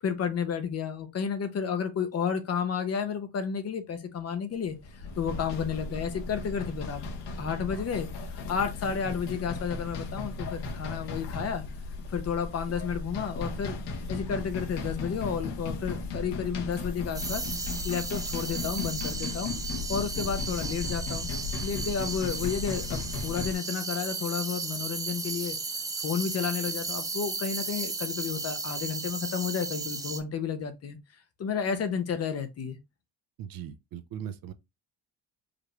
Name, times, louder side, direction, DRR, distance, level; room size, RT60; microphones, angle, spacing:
voice 1, 0.0-7.0 7.4-11.6 12.1-13.8 14.1-17.4 17.8-19.5 19.9-21.3 21.6-25.6 26.0-31.0 31.4-32.8, left 6 dB, 35° left, 0.6 m, -31 dB
sound 1, 4.7-23.5, left 3 dB, 85° left, 1.2 m, -36 dB
sound 2, 17.1-30.2, right 3 dB, 10° right, 0.3 m, -35 dB
voice 2, 33.4-34.5, right 9 dB, 55° right, 0.6 m, -39 dB
5.0 x 2.3 x 3.1 m
cardioid pair, 160°, 41 cm